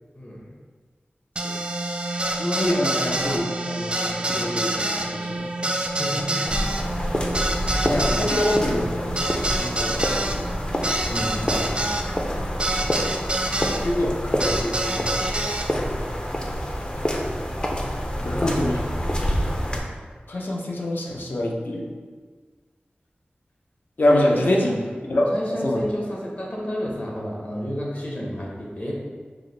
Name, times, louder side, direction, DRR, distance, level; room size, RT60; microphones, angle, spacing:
voice 1, 0.1-0.5 6.0-6.7 11.1-11.6 18.3-18.6 24.1-24.8 25.3-28.9, equal, 45° left, -4 dB, 1.0 m, -31 dB
sound 1, 1.4-13.8 14.4-15.7, right 1 dB, 30° right, 0.4 m, -27 dB
voice 2, 2.4-5.9 7.9-10.5 13.8-15.9 18.2-18.7 20.3-21.9 24.0-24.7 25.1-25.3 25.6-25.8, left 1 dB, 65° left, -2 dB, 0.7 m, -26 dB
sound 2, 6.5-19.8, equal, 25° left, 0.5 m, -27 dB
4.8 x 2.1 x 3.8 m, 1.5 s
wide cardioid pair, 65°, 4 cm